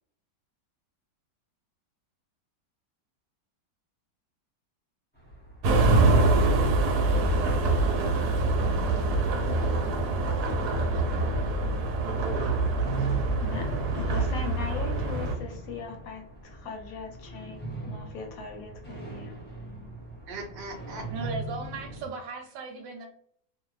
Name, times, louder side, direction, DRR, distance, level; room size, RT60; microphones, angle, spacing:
sound 1, 5.1-22.1, right 2 dB, 10° left, 0.7 m, -41 dB
sound 2, 5.6-15.3, right 2 dB, 70° right, 1.0 m, -25 dB
voice 1, 12.1-13.3 20.3-21.3, equal, 50° right, 0 dB, 0.5 m, -40 dB
voice 2, 13.4-19.3, left 5 dB, 65° left, 2 dB, 0.9 m, -39 dB
voice 3, 21.1-23.1, right 4 dB, 90° right, 1 dB, 1.3 m, -37 dB
2.7 x 2.4 x 3.0 m, 0.65 s
omnidirectional pair, 1.9 m